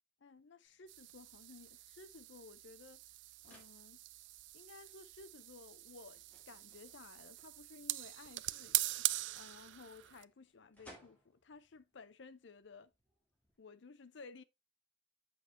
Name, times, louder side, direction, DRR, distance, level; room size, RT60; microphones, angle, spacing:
voice 1, 0.2-3.0 3.4-4.0 4.5-9.1 9.3-12.9 13.6-14.4, left 4 dB, 60° left, 0.6 m, -56 dB
sound 1, 0.6-13.6, equal, 10° left, 2.0 m, -67 dB
sound 2, 0.9-10.2, right 17 dB, 60° right, 0.3 m, -42 dB
7.7 x 5.8 x 2.9 m
head